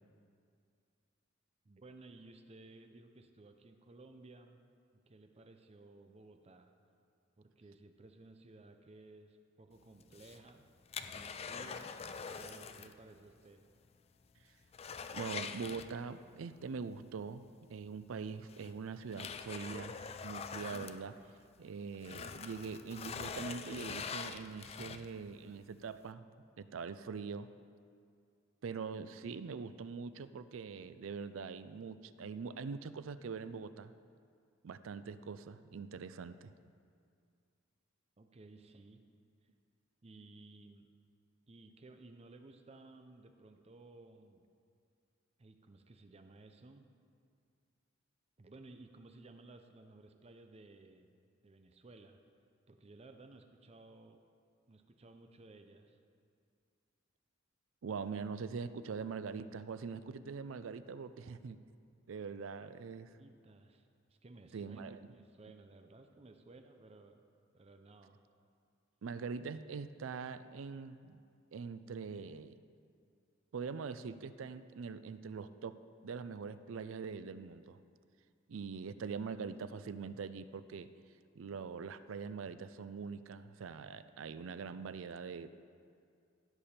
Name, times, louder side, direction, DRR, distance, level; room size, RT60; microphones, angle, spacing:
voice 1, 1.6-4.6 5.1-6.7 7.4-10.7 11.1-11.9 12.4-13.6 38.2-39.0 40.0-40.9 41.5-44.5 45.4-46.9 48.4-51.1 51.4-52.2 52.7-54.2 54.7-56.0 62.9-67.2 67.5-68.2, right 2 dB, 30° right, 6 dB, 0.5 m, -57 dB
object pushed on table, 10.0-13.0 13.3-13.4 13.8-13.9 14.3-16.3 17.7-17.8 18.5-21.6 21.9-25.3 25.8-25.9, left 6 dB, 30° left, 0.4 m, -44 dB
voice 2, 15.1-20.0 20.2-21.2 21.6-26.3 26.6-27.5 28.6-33.9 34.6-36.5 57.8-61.6 62.1-63.2 64.5-65.0 69.0-71.2 71.5-72.6 73.5-77.8 78.5-80.9 81.4-85.5, right 5 dB, 80° right, 13 dB, 0.4 m, -43 dB
15.5 x 6.8 x 4.3 m, 2.3 s
head